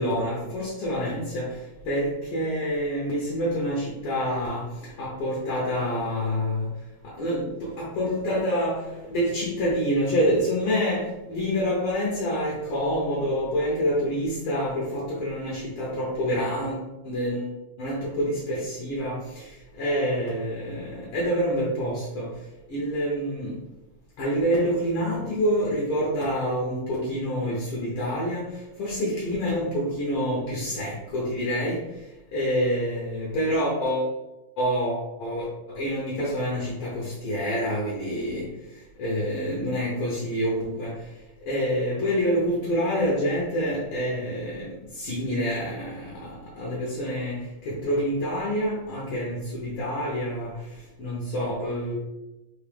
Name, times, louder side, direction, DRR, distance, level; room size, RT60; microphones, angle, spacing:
voice 1, 0.0-1.5 1.9-4.6 5.0-6.7 7.0-8.8 9.1-17.5 17.8-19.5 19.8-22.3 22.7-23.6 24.2-28.4 28.8-31.8 32.3-34.1 34.6-38.4 39.0-40.9 41.5-44.7 45.0-47.4 47.6-50.5 51.0-51.9, equal, 70° left, -3 dB, 1.3 m, -27 dB
4.8 x 2.7 x 3.4 m, 1.0 s
omnidirectional pair, 3.3 m